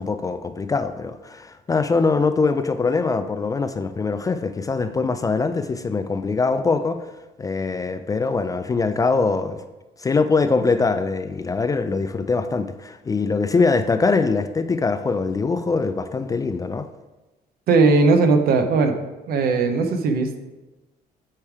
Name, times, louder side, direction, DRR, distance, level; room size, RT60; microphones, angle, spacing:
voice 1, 0.0-7.1 7.4-9.6 10.0-16.9, left 4 dB, 20° left, 10 dB, 0.3 m, -22 dB
voice 2, 17.7-19.0 19.3-20.4, right 4 dB, 65° right, 6 dB, 0.9 m, -18 dB
8.5 x 3.4 x 4.7 m, 1.1 s
cardioid pair, 110°, 17 cm